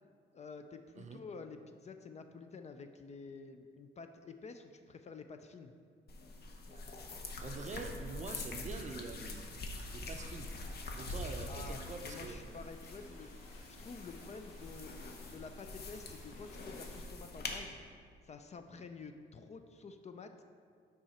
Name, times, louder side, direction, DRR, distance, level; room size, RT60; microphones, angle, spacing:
voice 1, 0.3-5.7 11.5-17.8 18.2-20.5, left 4 dB, 35° left, 7 dB, 0.4 m, -50 dB
sound 1, 6.1-17.6, left 2 dB, 50° left, 0.8 m, -45 dB
voice 2, 7.4-9.5 9.9-10.5 11.0-12.5, right 4 dB, 35° right, 5 dB, 0.5 m, -45 dB
sound 2, 9.7-17.0, equal, 80° left, 1.2 m, -51 dB
6.0 x 4.8 x 4.2 m, 2.1 s
cardioid pair, 90°, 20 cm